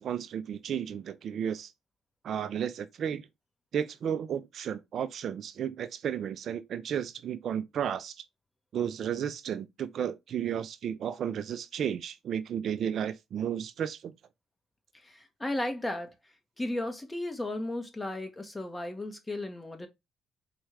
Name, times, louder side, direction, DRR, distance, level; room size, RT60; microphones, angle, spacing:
voice 1, 0.0-1.7 2.2-3.3 3.7-8.2 8.7-14.1, right 8 dB, 65° right, 0.3 m, -33 dB
voice 2, 14.9-19.9, left 1 dB, 20° left, 1.0 m, -35 dB
4.3 x 2.3 x 3.1 m
supercardioid pair, 65°, 0 cm